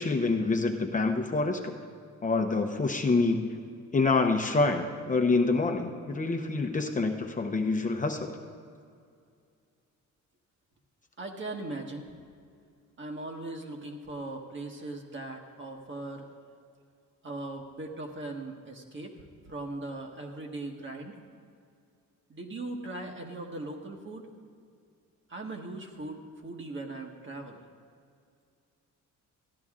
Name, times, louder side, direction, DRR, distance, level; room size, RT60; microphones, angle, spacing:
voice 1, 0.0-1.7 2.2-3.5 3.9-8.4, left 3 dB, 25° left, 3 dB, 0.8 m, -27 dB
voice 2, 11.2-12.1 13.0-16.2 17.2-19.1 19.5-21.1 22.3-24.3 25.3-27.6, right 2 dB, 40° right, 2 dB, 1.4 m, -39 dB
14.0 x 10.5 x 3.7 m, 2.3 s
cardioid pair, 90°, 30 cm